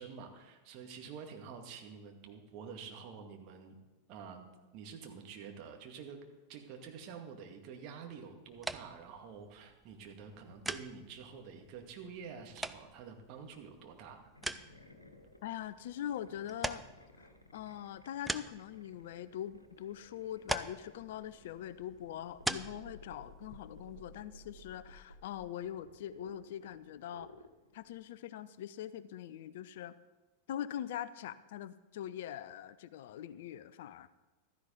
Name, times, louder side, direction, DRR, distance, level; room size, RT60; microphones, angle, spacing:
voice 1, 0.0-3.8 4.1-4.5 4.7-6.2 6.5-14.3, right 6 dB, 40° right, 3 dB, 2.1 m, -48 dB
sound 1, 8.5-24.2, right 2 dB, 5° right, 0.5 m, -44 dB
sound 2, 14.3-28.1, left 1 dB, 85° left, 1.4 m, -57 dB
voice 2, 15.4-16.8 17.2-27.3 27.7-29.9 30.5-34.1, left 11 dB, 55° left, 16 dB, 0.5 m, -43 dB
15.0 x 13.0 x 4.0 m, 1.1 s
figure-of-eight pair, 90°, 0 cm